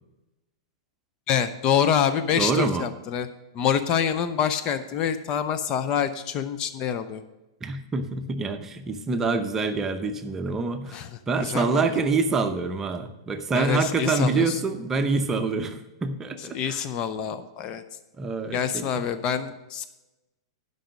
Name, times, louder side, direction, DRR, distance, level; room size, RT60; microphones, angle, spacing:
voice 1, 1.3-3.3 3.5-7.2 10.9-11.1 11.4-11.9 13.5-14.6 16.5-17.8 18.5-19.8, left 8 dB, 35° left, 10 dB, 0.6 m, -26 dB
voice 2, 2.4-2.9 7.6-16.8 18.2-19.0, right 4 dB, 20° right, 7 dB, 0.8 m, -26 dB
11.5 x 5.4 x 6.2 m, 1.0 s
figure-of-eight pair, 100°, 2 cm